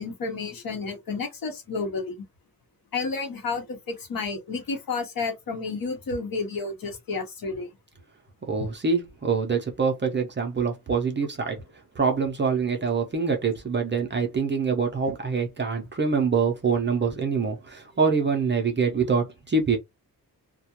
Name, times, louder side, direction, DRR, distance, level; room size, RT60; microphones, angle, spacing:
voice 1, 0.0-2.2 2.9-7.7 8.6-8.7, left 4 dB, 65° left, 0.8 m, -31 dB
voice 2, 8.4-11.6 12.0-19.8, right 5 dB, 30° right, 0.4 m, -25 dB
2.3 x 2.1 x 2.8 m
wide cardioid pair, 175°, 38 cm